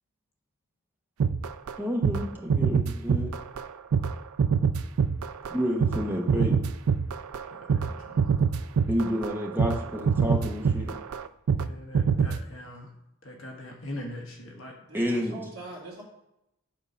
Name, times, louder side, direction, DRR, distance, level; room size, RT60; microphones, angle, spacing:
sound 1, 1.2-1.8 2.0-2.2 2.5-3.7 3.9-11.7 11.9-12.4, right 6 dB, 75° right, 0.4 m, -25 dB
voice 1, 1.8-3.4 5.5-6.6 8.9-11.0 14.9-15.4, equal, 10° right, 0 dB, 1.0 m, -29 dB
voice 2, 11.6-12.9 13.2-14.7, left 1 dB, 60° left, 0 dB, 1.3 m, -41 dB
voice 3, 14.7-16.0, right 2 dB, 45° right, -12 dB, 2.7 m, -42 dB
8.6 x 3.9 x 5.5 m, 0.82 s
head